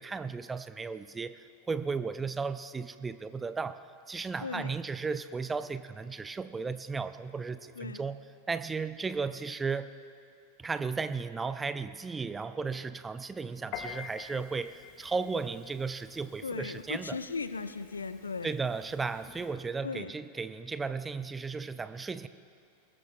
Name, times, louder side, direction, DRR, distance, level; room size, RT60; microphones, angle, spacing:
voice 1, 0.0-8.2 8.5-9.9 10.6-17.2 18.4-22.3, right 4 dB, 15° right, 13 dB, 0.4 m, -35 dB
voice 2, 4.4-4.8 7.7-8.0 16.4-18.5 19.8-20.1, left 4 dB, 75° left, 12 dB, 0.6 m, -37 dB
Piano, 13.7-19.6, left 7 dB, 40° left, 1.3 m, -48 dB
22.5 x 19.5 x 2.2 m, 2.3 s
figure-of-eight pair, 90°, 0 cm